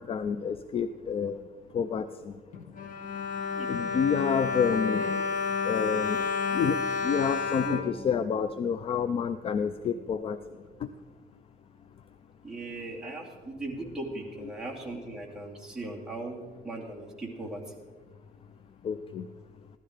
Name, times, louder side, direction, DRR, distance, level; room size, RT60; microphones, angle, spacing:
voice 1, 0.0-1.4 1.7-2.0 3.7-5.0 5.6-6.2 6.5-6.8 7.0-10.4 14.4-14.5 18.8-19.3, left 6 dB, 35° left, 11 dB, 0.4 m, -28 dB
Bowed string instrument, 2.5-8.8 9.5-9.6 9.8-10.0, left 5 dB, 50° left, 1.7 m, -31 dB
voice 2, 12.4-17.6, right 2 dB, 5° right, -4 dB, 2.5 m, -38 dB
15.5 x 12.5 x 5.0 m, 1.4 s
cardioid pair, 160°, 17 cm